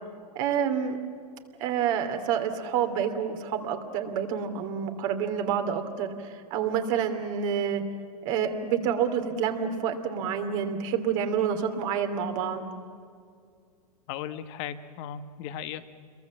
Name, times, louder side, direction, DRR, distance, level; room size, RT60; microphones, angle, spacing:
voice 1, 0.3-1.0 1.6-7.8 8.2-12.7, right 8 dB, 55° right, 6 dB, 2.8 m, -28 dB
voice 2, 14.1-15.8, left 9 dB, 50° left, 10 dB, 1.4 m, -36 dB
29.0 x 22.5 x 7.4 m, 2.3 s
hypercardioid pair, 110°, 20 cm